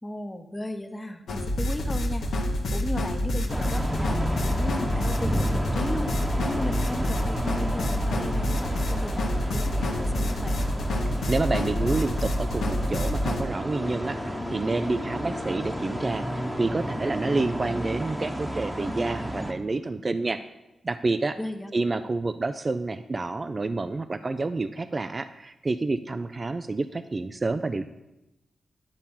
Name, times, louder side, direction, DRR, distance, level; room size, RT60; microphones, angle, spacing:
voice 1, 0.0-2.3 2.7-6.1 6.5-10.6 21.4-21.7, left 1 dB, 20° left, 7 dB, 1.0 m, -35 dB
sound 1, 1.3-13.4, left 1 dB, 85° left, 1.1 m, -27 dB
sound 2, 3.5-19.5, equal, 10° right, 1.1 m, -32 dB
voice 2, 11.3-20.4 20.8-21.4 21.7-27.9, right 3 dB, 40° right, 11 dB, 0.4 m, -28 dB
sound 3, 13.6-18.3, left 3 dB, 60° left, 1.1 m, -41 dB
10.5 x 4.2 x 7.1 m, 0.97 s
cardioid pair, 60°, 0 cm